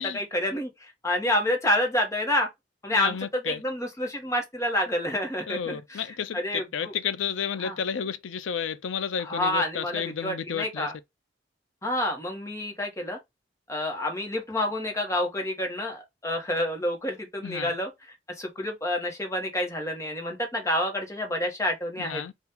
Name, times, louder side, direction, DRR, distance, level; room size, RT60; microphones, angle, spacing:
voice 1, 0.0-2.5 2.8-6.0 6.3-6.6 7.6-7.7 9.3-10.9 11.8-13.2 13.7-17.9 18.4-22.2, left 1 dB, 15° left, 1.0 m, -28 dB
voice 2, 2.9-3.6 5.5-10.9 17.4-17.7 22.0-22.3, left 7 dB, 85° left, 0.5 m, -32 dB
2.8 x 2.4 x 3.5 m
head